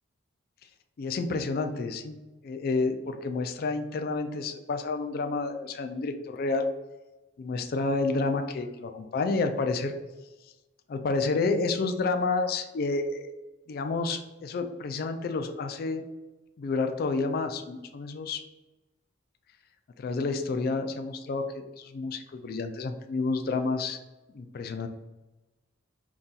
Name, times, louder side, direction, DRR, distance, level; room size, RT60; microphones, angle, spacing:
voice 1, 1.0-2.1 2.4-6.7 7.4-9.9 10.9-13.3 13.7-16.0 16.6-18.4 20.0-24.0 24.3-24.9, left 3 dB, 50° left, 7 dB, 0.3 m, -29 dB
4.0 x 2.3 x 3.8 m, 1.1 s
head